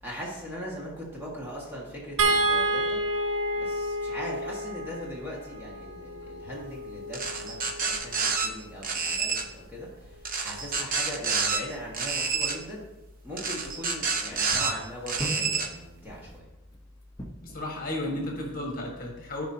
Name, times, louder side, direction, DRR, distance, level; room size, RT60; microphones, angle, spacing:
voice 1, 0.0-3.0 3.5-12.9 13.2-16.5, equal, 10° right, -5 dB, 1.7 m, -39 dB
sound 1, 2.2-8.5 10.0-10.2 10.6-10.7, right 2 dB, 75° right, 0.9 m, -30 dB
sound 2, 6.0-17.6, right 1 dB, 15° left, 1.0 m, -45 dB
sound 3, 7.1-8.5 8.8-9.4 10.2-11.6 11.9-12.6 13.4-14.7 15.1-15.7, right 5 dB, 40° right, 0.8 m, -28 dB
voice 2, 17.4-19.4, left 1 dB, 40° left, -1 dB, 1.6 m, -33 dB
14.0 x 5.1 x 2.8 m, 1.0 s
head